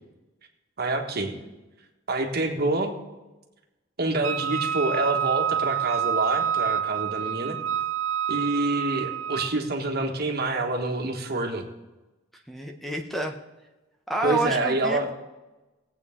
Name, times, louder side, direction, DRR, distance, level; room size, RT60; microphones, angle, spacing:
voice 1, 0.8-1.4 2.1-2.9 4.0-7.6 8.3-11.6 14.2-15.1, right 2 dB, 55° right, 3 dB, 1.5 m, -27 dB
Wind instrument woodwind instrument, 4.2-9.6, right 9 dB, 75° right, 0.5 m, -27 dB
voice 2, 12.5-13.4 14.1-15.1, right 1 dB, ahead, 3 dB, 0.8 m, -29 dB
19.5 x 8.2 x 3.6 m, 1.1 s
head